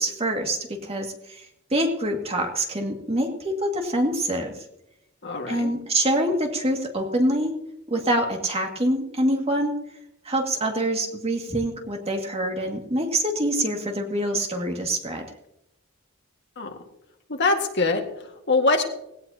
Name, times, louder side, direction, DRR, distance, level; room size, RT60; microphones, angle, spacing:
voice 1, 0.0-4.5 5.5-7.5 7.9-9.8 10.2-15.3, right 1 dB, 30° right, 2 dB, 2.2 m, -25 dB
voice 2, 5.2-5.7 16.6-16.8 17.3-18.8, left 3 dB, 60° left, 3 dB, 1.9 m, -24 dB
19.0 x 17.0 x 2.9 m, 0.83 s
head